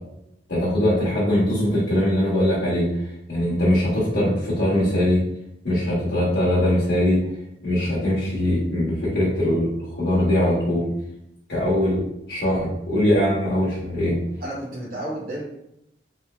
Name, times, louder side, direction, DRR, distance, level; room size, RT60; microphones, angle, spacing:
voice 1, 0.5-2.9 3.3-5.2 5.6-7.2 7.6-9.7 9.9-10.8 11.5-12.0 12.3-14.1, left 1 dB, 65° left, -9 dB, 1.0 m, -21 dB
voice 2, 14.4-15.4, right 1 dB, 50° right, -8 dB, 0.8 m, -31 dB
3.1 x 2.7 x 2.3 m, 0.81 s
head